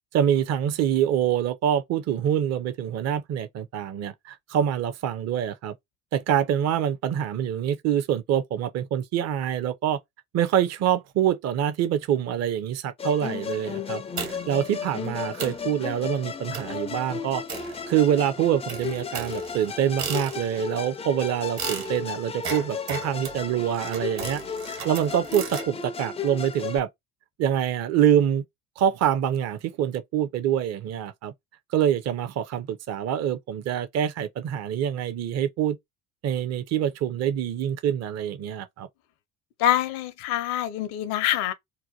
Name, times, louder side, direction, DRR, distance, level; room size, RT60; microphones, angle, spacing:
voice 1, 0.1-5.7 6.1-10.0 10.3-14.0 14.5-17.4 17.9-24.4 24.8-26.9 27.4-28.5 28.8-31.3 31.7-35.8 36.2-38.9, right 10 dB, 40° right, 0.5 m, -25 dB
Musical instrument, 13.0-26.8, left 6 dB, 15° left, 0.3 m, -34 dB
sound 1, 14.2-14.6 15.1-15.2 15.4-15.7 16.5-16.8 17.5-18.2 18.7-20.7 21.6-25.7, right 6 dB, 60° right, 1.4 m, -36 dB
voice 2, 39.6-41.5, left 12 dB, 70° left, 0.6 m, -25 dB
2.7 x 2.1 x 2.7 m
hypercardioid pair, 60°, 40 cm